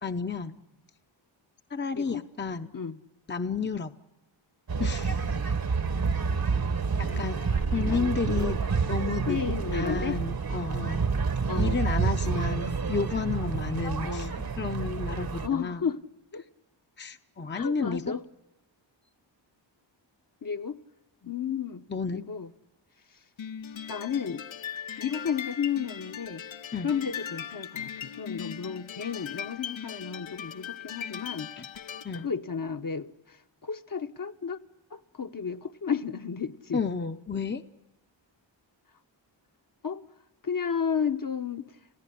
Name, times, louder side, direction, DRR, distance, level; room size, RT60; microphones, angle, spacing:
voice 1, 0.0-0.6 1.7-2.7 3.3-3.9 4.8-5.2 7.0-7.4 7.7-8.6 8.9-9.4 9.7-11.0 11.6-15.9 17.0-18.1 21.9-22.2 26.7-26.9 31.6-31.7 32.0-32.3 36.7-37.6, left 5 dB, 25° left, 0.8 m, -31 dB
sound 1, 4.7-15.5, right 5 dB, 50° right, 1.2 m, -28 dB
voice 2, 7.1-8.6 9.3-10.2 11.5-11.8 12.2-12.5 14.0-14.4 15.4-16.0 16.3-16.4 17.5-18.2 20.4-20.8 21.3-21.8 22.1-22.5 23.9-24.4 25.0-26.4 26.8-31.5 32.1-34.6 34.9-36.8 39.8-40.0 40.4-41.8, left 6 dB, 45° left, 1.1 m, -33 dB
sound 2, 23.4-32.3, left 8 dB, 80° left, 1.0 m, -39 dB
30.0 x 15.5 x 10.0 m
wide cardioid pair, 95°, 46 cm